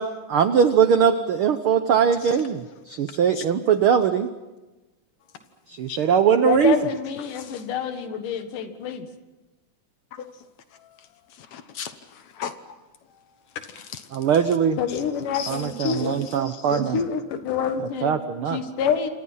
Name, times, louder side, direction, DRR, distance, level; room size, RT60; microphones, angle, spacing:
voice 1, 0.3-4.3 5.7-6.8 14.1-14.8 15.5-17.0 18.0-18.6, right 7 dB, 70° right, 9 dB, 1.3 m, -21 dB
voice 2, 6.4-9.1 14.8-16.2 16.7-18.1 18.5-19.1, left 7 dB, 90° left, 8 dB, 3.3 m, -27 dB
voice 3, 11.5-12.5 13.9-14.0 15.3-15.5 15.8-16.0 16.5-16.8, left 8 dB, 65° left, 10 dB, 2.2 m, -36 dB
28.5 x 26.5 x 5.7 m, 1.1 s
omnidirectional pair, 3.6 m